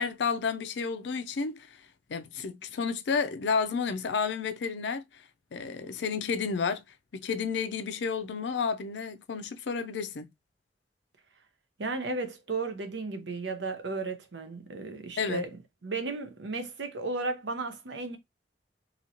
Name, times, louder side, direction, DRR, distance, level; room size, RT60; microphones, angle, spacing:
voice 1, 0.0-1.7 2.1-5.0 5.5-6.8 7.1-10.3 15.2-15.4, left 5 dB, 75° left, 0.4 m, -31 dB
voice 2, 11.8-15.5 15.8-18.2, right 3 dB, 85° right, 0.8 m, -34 dB
3.0 x 2.8 x 2.7 m
head